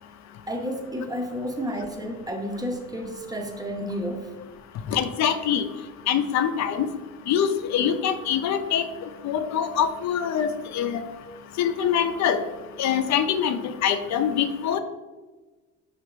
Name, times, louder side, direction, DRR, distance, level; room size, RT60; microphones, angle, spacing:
voice 1, 0.5-4.4, equal, 15° right, 3 dB, 0.5 m, -31 dB
voice 2, 4.9-5.7 6.1-6.9 7.3-8.9 9.2-11.0 11.6-12.4 12.8-14.8, left 8 dB, 65° left, 9 dB, 0.4 m, -24 dB
5.2 x 2.5 x 3.0 m, 1.3 s
cardioid pair, 90°, 30 cm